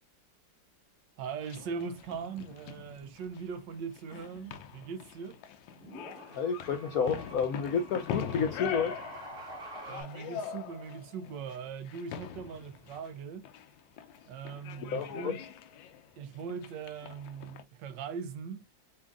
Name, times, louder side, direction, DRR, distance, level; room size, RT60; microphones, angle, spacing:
sound 1, 1.2-17.6, left 8 dB, 85° left, 1.3 m, -43 dB
voice 1, 1.2-5.4 9.8-13.5 14.3-15.4 16.2-18.8, right 6 dB, 75° right, 1.3 m, -40 dB
sound 2, 2.0-2.2 4.4-4.5 5.6-10.0, right 1 dB, 45° right, 2.8 m, -47 dB
voice 2, 6.4-8.9 14.9-15.3, left 6 dB, 70° left, 0.9 m, -30 dB
7.0 x 2.6 x 2.5 m
omnidirectional pair, 2.0 m